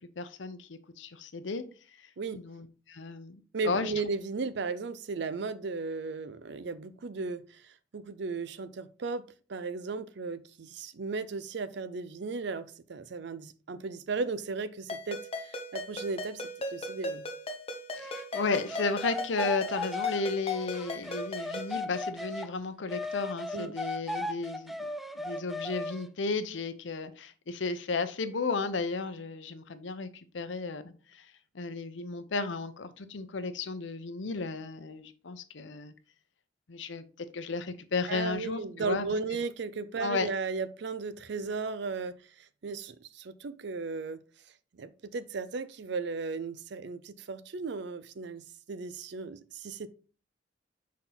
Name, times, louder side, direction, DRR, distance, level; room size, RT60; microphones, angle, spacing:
voice 1, 0.2-1.6 2.0-2.1 2.3-3.9 17.9-24.9 25.1-30.1 30.3-31.3 31.5-35.9 36.7-39.1 40.0-40.3, left 4 dB, 80° left, 0.7 m, -34 dB
voice 2, 3.5-16.4 16.7-17.2 23.5-23.7 38.1-44.2 44.7-49.9, right 4 dB, 65° right, 0.5 m, -36 dB
Ringtone, 14.9-21.8, left 2 dB, 35° left, 0.8 m, -38 dB
sound 1, 18.0-22.5 22.9-26.1, left 2 dB, ahead, 0.3 m, -36 dB
5.9 x 4.3 x 3.8 m
head